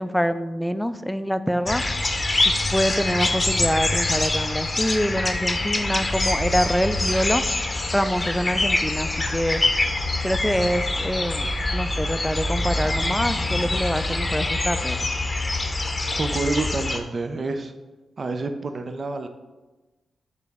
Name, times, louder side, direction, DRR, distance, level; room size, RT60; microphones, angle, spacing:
voice 1, 0.0-1.8 2.7-7.4 7.9-9.6 10.2-15.1, equal, 5° left, 11 dB, 0.4 m, -25 dB
sound 1, 1.7-17.0, left 2 dB, 30° left, 0.7 m, -25 dB
voice 2, 16.2-17.7 18.2-19.3, right 3 dB, 50° right, 7 dB, 0.5 m, -28 dB
6.8 x 4.1 x 3.5 m, 1.2 s
cardioid pair, 55°, 0 cm